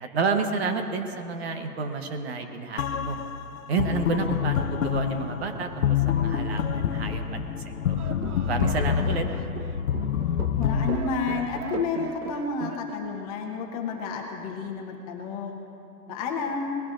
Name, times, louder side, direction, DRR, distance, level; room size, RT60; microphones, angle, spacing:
voice 1, 0.0-3.2 3.7-7.5 7.9-8.0 8.4-9.3, right 4 dB, 40° right, 6 dB, 1.1 m, -30 dB
sound 1, 2.8-10.9, left 8 dB, 60° left, 0.7 m, -27 dB
sound 2, 8.0-13.0, right 10 dB, 70° right, 0.6 m, -39 dB
voice 2, 10.6-15.6 16.1-16.7, left 5 dB, 25° left, 1 dB, 1.1 m, -30 dB
20.5 x 16.0 x 2.6 m, 2.7 s
hypercardioid pair, 145°, 47 cm